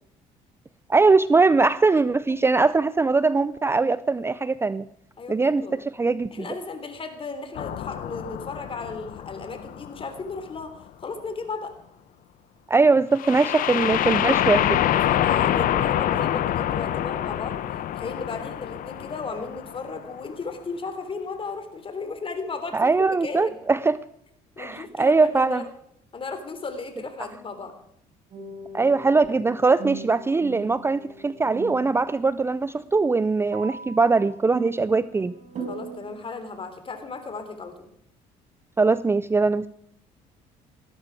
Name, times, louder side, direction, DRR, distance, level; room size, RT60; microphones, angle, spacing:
voice 1, 0.9-4.9 5.3-6.5 12.7-14.8 22.7-24.0 24.6-25.6 27.2-27.3 28.7-35.3 38.8-39.7, right 4 dB, 15° right, 17 dB, 0.4 m, -21 dB
voice 2, 5.2-5.8 6.3-10.8 11.0-11.7 14.9-17.6 17.9-23.6 24.6-25.6 26.1-27.7 35.7-37.9, left 4 dB, 35° left, 8 dB, 3.4 m, -35 dB
sound 1, 7.5-10.4 13.2-20.0, left 11 dB, 65° left, 1.0 m, -26 dB
sound 2, 28.3-36.1, right 4 dB, 50° right, 5.3 m, -40 dB
17.0 x 13.0 x 4.8 m, 0.74 s
supercardioid pair, 85°, 15 cm